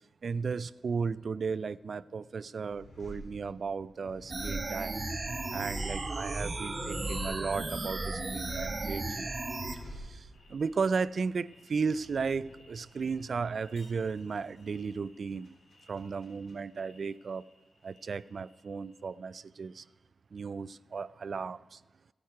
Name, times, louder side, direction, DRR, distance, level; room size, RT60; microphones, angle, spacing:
voice 1, 0.2-5.1 5.5-9.4 9.7-15.5 15.9-17.4 17.8-19.9 20.3-21.8, right 5 dB, 55° right, 19 dB, 0.3 m, -35 dB
sound 1, 2.7-17.6 17.9-18.7, left 1 dB, 70° left, 3.9 m, -48 dB
sound 2, 4.3-9.8, right 2 dB, 35° right, 1.0 m, -35 dB
15.5 x 8.9 x 4.7 m, 1.2 s
cardioid pair, 90°, 0 cm